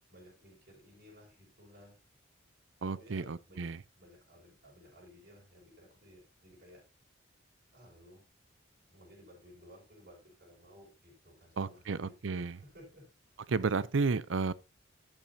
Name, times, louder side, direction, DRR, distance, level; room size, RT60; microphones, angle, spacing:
voice 1, 0.1-2.0 2.9-6.8 7.7-8.2 8.9-13.1, equal, 60° right, 5.6 m, -57 dB
voice 2, 2.8-3.8 11.6-12.5 13.5-14.5, right 4 dB, 85° right, 0.6 m, -32 dB
11.5 x 8.8 x 2.8 m
head